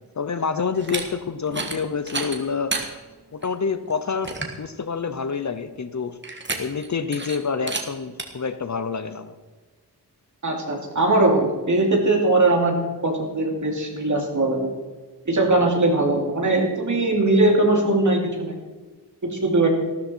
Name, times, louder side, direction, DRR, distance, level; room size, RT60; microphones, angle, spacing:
voice 1, 0.0-2.8 3.3-6.2 6.6-9.3, left 5 dB, 45° left, 12 dB, 0.7 m, -27 dB
sound 1, 0.7-1.0 1.5-1.8 2.1-2.9 3.4-3.5 3.9-4.0 4.2-4.6 6.2-6.9 7.1-7.4 7.7-7.8 8.2-8.3, right 3 dB, 25° right, 1.6 m, -29 dB
voice 2, 10.4-12.8 13.0-14.7 15.3-18.6 19.2-19.7, right 2 dB, 45° right, 1 dB, 2.8 m, -20 dB
14.0 x 13.0 x 4.5 m, 1.3 s
wide cardioid pair, 145°, 41 cm